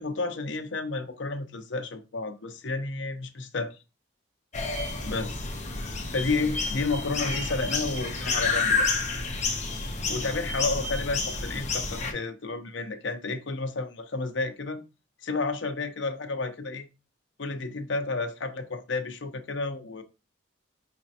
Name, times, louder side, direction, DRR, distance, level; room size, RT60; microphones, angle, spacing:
voice 1, 0.0-3.8 5.0-5.5 6.1-8.9 10.1-14.8 15.2-16.9 17.4-20.0, left 3 dB, 75° left, 0.7 m, -31 dB
sound 1, 4.5-12.1, left 3 dB, 35° left, 0.8 m, -29 dB
5.0 x 3.1 x 2.8 m
head